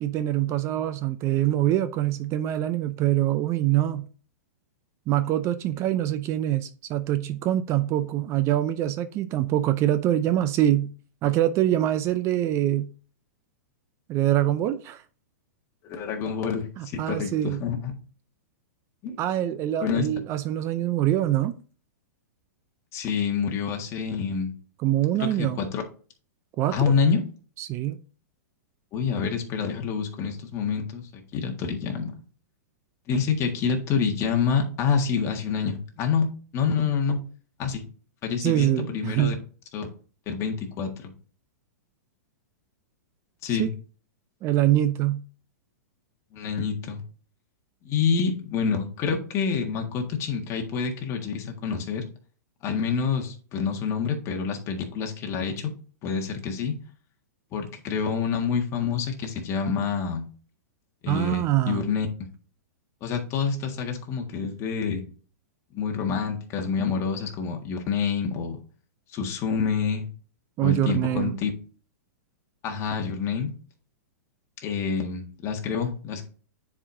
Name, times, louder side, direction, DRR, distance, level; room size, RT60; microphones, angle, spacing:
voice 1, 0.0-4.1 5.1-10.9 11.2-12.9 14.1-15.0 16.8-17.6 19.2-21.6 24.8-25.6 26.6-26.8 27.6-28.0 38.4-39.4 43.5-43.7 44.4-45.2 61.1-61.9 70.6-71.3, right 13 dB, 30° right, 0.5 m, -24 dB
voice 2, 15.8-17.9 19.0-19.2 19.8-20.1 22.9-24.5 25.2-25.8 26.7-27.2 28.9-32.2 33.1-36.3 36.5-37.2 37.6-37.8 38.2-39.4 39.7-39.9 40.2-41.1 43.4-43.7 46.3-47.0 47.8-52.1 52.6-55.7 56.0-56.7 57.5-60.2 61.0-62.1 63.0-65.0 65.7-68.6 69.1-70.1 70.6-71.5 72.6-73.5 74.6-76.3, left 6 dB, 30° left, 1.7 m, -27 dB
9.7 x 4.9 x 2.6 m
hypercardioid pair, 130°, 9 cm